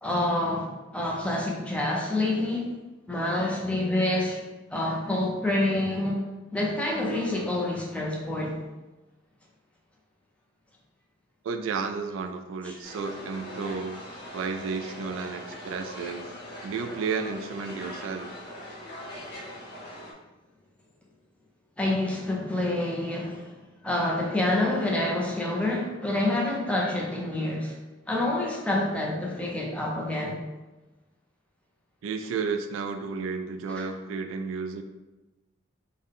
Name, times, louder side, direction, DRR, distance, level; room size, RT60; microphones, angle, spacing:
voice 1, 0.0-2.7 3.1-4.4 4.7-6.2 6.5-8.7 12.6-12.8 21.8-23.5 23.8-27.8 28.1-30.4 33.8-33.9, left 1 dB, 5° left, -3 dB, 0.5 m, -27 dB
voice 2, 11.4-14.0 14.3-16.3 16.6-18.3 32.0-34.8, right 5 dB, 85° right, 7 dB, 0.3 m, -32 dB
sound 1, 12.8-20.1, equal, 60° left, 1.2 m, -41 dB
3.7 x 2.1 x 3.5 m, 1.1 s
head